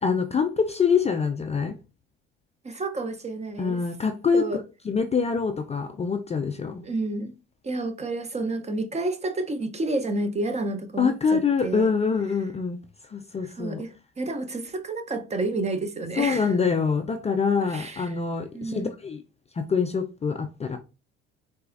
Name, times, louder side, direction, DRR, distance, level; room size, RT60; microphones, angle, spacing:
voice 1, 0.0-1.7 3.6-4.5 4.8-6.8 11.0-12.8 13.1-13.8 16.2-19.2 19.5-20.8, left 5 dB, 25° left, 0.4 m, -25 dB
voice 2, 2.6-3.8 4.3-4.6 6.8-7.4 7.6-11.9 13.4-16.5 17.6-18.2 18.5-18.9, right 2 dB, 25° right, 0.6 m, -30 dB
4.0 x 2.4 x 2.4 m
supercardioid pair, 75°, 29 cm